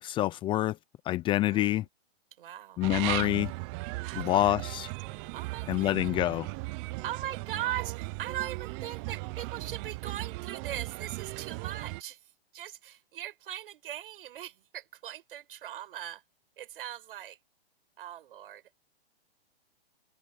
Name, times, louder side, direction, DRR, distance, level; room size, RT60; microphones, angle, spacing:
voice 1, 0.0-0.8 1.1-1.8 2.8-3.5 4.1-4.9 5.7-6.5, left 14 dB, 15° left, 0.6 m, -27 dB
voice 2, 1.5-1.9 2.4-2.8 4.0-4.7 5.0-6.2 7.0-16.2 16.6-17.4 18.0-18.8, right 12 dB, 60° right, 7.5 m, -40 dB
sound 1, 2.8-12.0, right 24 dB, 30° right, 0.8 m, -37 dB
hypercardioid pair, 145°, 31 cm